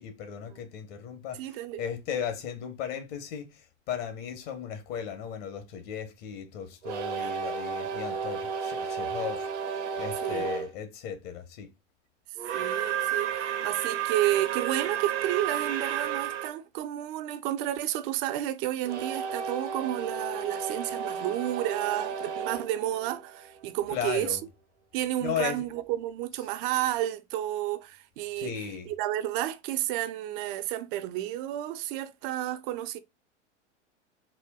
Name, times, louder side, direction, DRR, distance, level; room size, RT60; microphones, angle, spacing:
voice 1, 0.0-11.7 23.9-24.4 25.2-25.7 28.4-28.9, left 8 dB, 50° left, 0.9 m, -36 dB
voice 2, 1.4-1.8 7.2-7.3 10.2-10.5 12.5-24.4 24.9-28.5 28.9-33.0, right 13 dB, 50° right, 0.5 m, -31 dB
sound 1, 6.8-10.7 12.4-16.5 18.8-23.7, right 8 dB, 70° right, 0.9 m, -32 dB
4.2 x 2.2 x 2.2 m
hypercardioid pair, 100°, 36 cm